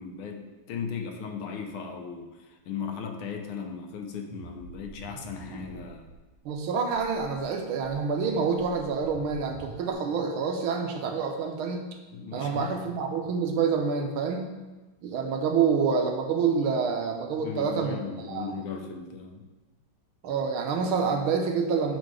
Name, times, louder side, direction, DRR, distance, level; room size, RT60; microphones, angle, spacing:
voice 1, 0.0-6.1 12.1-12.8 17.4-19.5, left 6 dB, 75° left, 3 dB, 1.6 m, -37 dB
sound 1, 4.3-6.2 6.5-6.6 6.9-7.4 7.8-9.9, right 2 dB, 55° right, 1.5 m, -46 dB
voice 2, 6.4-11.9 12.3-14.5 15.0-18.5 20.2-22.0, right 5 dB, 75° right, 4 dB, 1.5 m, -27 dB
7.6 x 4.2 x 4.7 m, 1.2 s
omnidirectional pair, 2.4 m